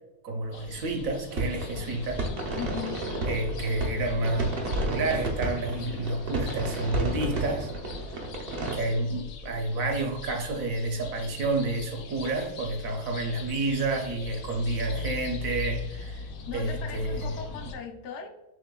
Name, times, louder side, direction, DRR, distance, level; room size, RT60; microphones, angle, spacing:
voice 1, 0.2-2.2 3.3-7.7 8.6-17.3, right 2 dB, 60° right, 0.9 m, -30 dB
sound 1, 0.5-17.7, left 5 dB, 70° left, 0.9 m, -41 dB
sound 2, 1.3-8.8, right 2 dB, 75° right, 0.5 m, -32 dB
voice 2, 2.5-3.0 16.5-18.3, left 7 dB, 90° left, 0.6 m, -38 dB
6.2 x 3.6 x 2.2 m
omnidirectional pair, 2.0 m